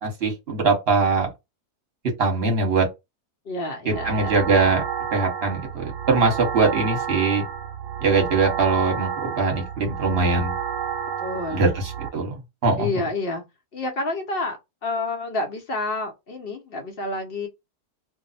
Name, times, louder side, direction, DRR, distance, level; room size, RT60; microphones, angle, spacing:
voice 1, 0.0-1.3 2.2-2.9 3.9-4.8 5.1-7.4 8.0-10.6 11.5-11.7 12.1-12.3 12.6-12.9, right 4 dB, 40° right, 1.2 m, -21 dB
voice 2, 3.5-4.3 11.2-11.7 12.8-13.4 13.7-17.5, left 2 dB, 55° left, 0.7 m, -29 dB
sound 1, 3.9-12.1, right 8 dB, 70° right, 0.7 m, -30 dB
2.7 x 2.0 x 4.0 m
omnidirectional pair, 1.7 m